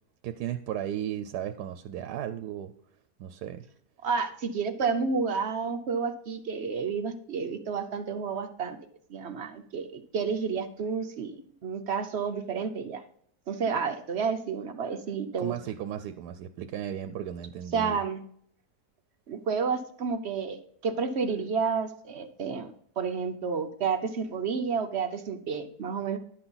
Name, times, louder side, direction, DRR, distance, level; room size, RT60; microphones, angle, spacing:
voice 1, 0.2-2.7 3.2-3.6 15.4-18.0, right 10 dB, 85° right, 10 dB, 1.1 m, -35 dB
voice 2, 4.0-8.8 9.1-13.0 13.5-15.5 17.7-18.2 19.3-22.7 23.0-26.2, right 5 dB, 55° right, 8 dB, 0.7 m, -30 dB
11.0 x 5.9 x 3.9 m, 0.65 s
omnidirectional pair, 1.7 m